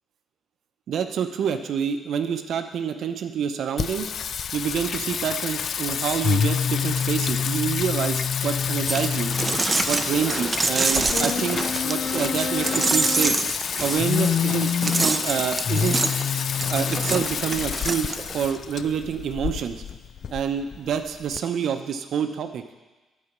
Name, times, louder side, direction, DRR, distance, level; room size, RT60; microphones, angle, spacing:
voice 1, 0.9-4.1 4.5-9.3 9.9-13.4 13.8-16.0 16.7-19.8 20.3-22.6, right 7 dB, 70° right, 8 dB, 0.7 m, -27 dB
Singing, 3.8-21.4, left 7 dB, 55° left, 0.3 m, -27 dB
sound 1, 8.9-18.6, right 3 dB, 25° right, 0.5 m, -27 dB
9.8 x 4.8 x 7.4 m, 1.2 s
cardioid pair, 90°, 0 cm